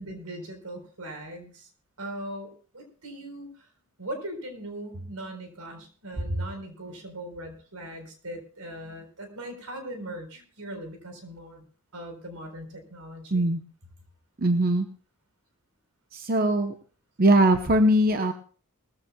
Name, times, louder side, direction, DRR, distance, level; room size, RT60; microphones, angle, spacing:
voice 1, 0.0-1.7 2.0-3.7 4.0-11.6 11.9-13.5, right 1 dB, 85° right, 6 dB, 4.2 m, -40 dB
voice 2, 13.3-13.6 14.4-14.9 16.1-16.7 17.2-18.3, right 1 dB, 40° right, 7 dB, 0.9 m, -21 dB
20.0 x 14.5 x 2.3 m, 0.39 s
head